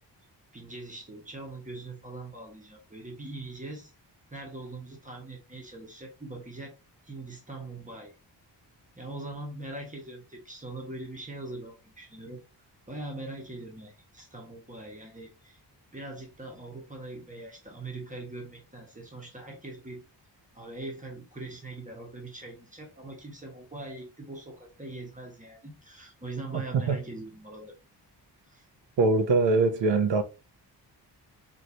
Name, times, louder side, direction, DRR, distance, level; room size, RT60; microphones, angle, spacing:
voice 1, 0.5-3.9 4.3-6.8 7.0-8.1 8.9-12.4 12.9-15.6 15.9-20.0 20.5-27.8 28.5-28.6, right 2 dB, 20° right, 1.3 m, -41 dB
voice 2, 29.0-30.2, right 3 dB, 85° right, 0.9 m, -22 dB
4.7 x 3.2 x 2.7 m
wide cardioid pair, 160°, 43 cm